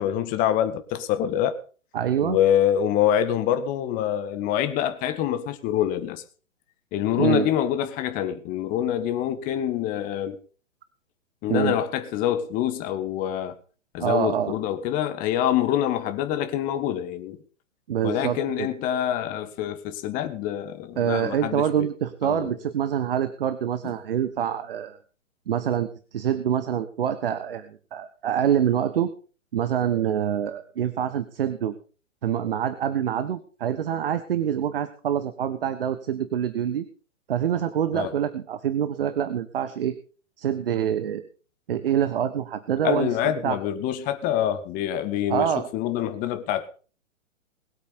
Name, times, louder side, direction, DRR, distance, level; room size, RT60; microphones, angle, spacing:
voice 1, 0.0-1.6 2.2-6.2 6.9-10.4 11.4-13.5 13.9-17.4 18.0-21.9 22.2-22.5 37.9-38.1 42.8-46.7, left 10 dB, 20° left, 1.6 m, -25 dB
voice 2, 1.9-2.4 7.2-7.5 11.5-11.8 14.0-14.5 17.9-18.7 21.0-25.0 25.5-29.1 29.5-31.8 32.2-36.8 37.3-39.9 40.4-41.2 41.7-43.6 45.3-45.7, right 9 dB, 50° right, 1.3 m, -26 dB
21.0 x 8.6 x 5.3 m
figure-of-eight pair, 120°, 37 cm